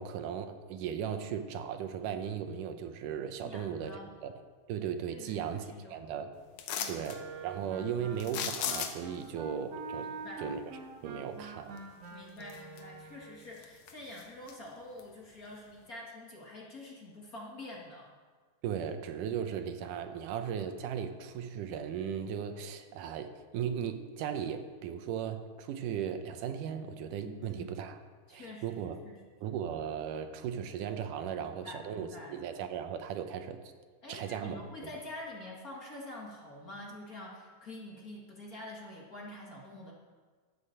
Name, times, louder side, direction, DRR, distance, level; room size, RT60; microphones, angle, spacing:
voice 1, 0.0-4.3 4.7-5.6 5.9-6.3 6.9-10.6 11.0-11.8 18.6-28.0 28.3-29.0 29.4-33.7 34.1-34.6, right 8 dB, 75° right, 7 dB, 2.4 m, -37 dB
voice 2, 3.4-4.1 5.1-5.9 6.8-7.1 10.0-10.4 12.1-18.1 27.2-27.8 28.3-29.3 31.3-32.4 34.0-39.9, left 1 dB, 35° left, -3 dB, 1.5 m, -47 dB
sound 1, 6.6-7.2 8.2-9.2 11.8-11.9 12.4-13.1 13.4-14.5 15.0-15.1, left 8 dB, 70° left, 2.1 m, -36 dB
Wind instrument woodwind instrument, 7.0-13.4, right 3 dB, 50° right, 2.8 m, -45 dB
12.5 x 8.4 x 6.5 m, 1.5 s
omnidirectional pair, 3.8 m